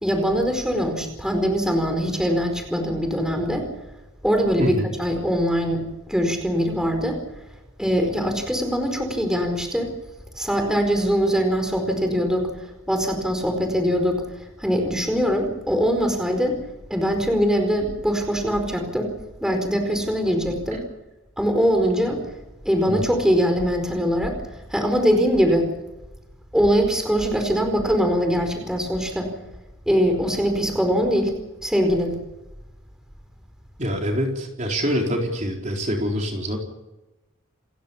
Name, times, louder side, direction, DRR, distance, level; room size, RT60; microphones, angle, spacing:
voice 1, 0.0-3.7 4.2-7.2 7.8-9.9 10.4-16.6 16.9-19.1 19.4-20.8 21.4-22.2 22.6-24.4 24.7-25.7 26.5-29.3 29.9-31.3 31.6-32.2, equal, 5° right, 4 dB, 4.7 m, -22 dB
voice 2, 4.6-4.9 22.9-23.1 33.8-36.6, equal, 35° right, 1 dB, 4.2 m, -25 dB
29.5 x 15.5 x 7.1 m, 0.98 s
head